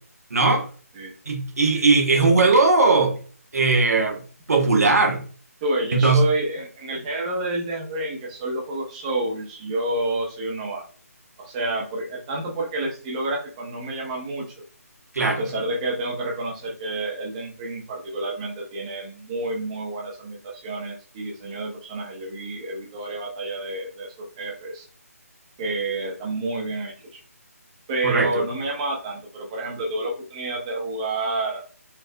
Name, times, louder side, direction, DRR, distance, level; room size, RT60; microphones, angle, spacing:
voice 1, 0.3-0.7 1.3-3.1 3.5-4.2 4.5-5.2 5.9-6.2 15.1-15.4 28.0-28.3, right 3 dB, 70° right, 1.0 m, -18 dB
voice 2, 5.6-10.8 11.4-14.6 15.2-24.9 25.6-27.2 27.9-31.6, right 2 dB, 25° right, 0.8 m, -29 dB
4.6 x 2.5 x 2.3 m
figure-of-eight pair, 155°, 9 cm